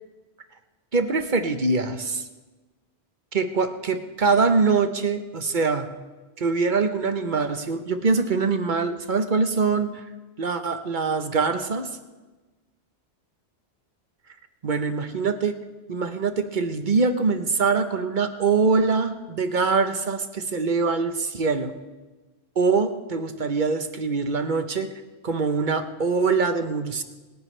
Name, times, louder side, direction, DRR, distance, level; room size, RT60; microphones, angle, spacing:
voice 1, 0.9-2.2 3.3-5.9 6.4-10.1 10.4-11.9 14.6-15.5 15.9-21.7 22.6-24.9 25.2-27.0, right 4 dB, 50° right, 8 dB, 1.1 m, -23 dB
26.5 x 10.5 x 3.3 m, 1.2 s
omnidirectional pair, 1.1 m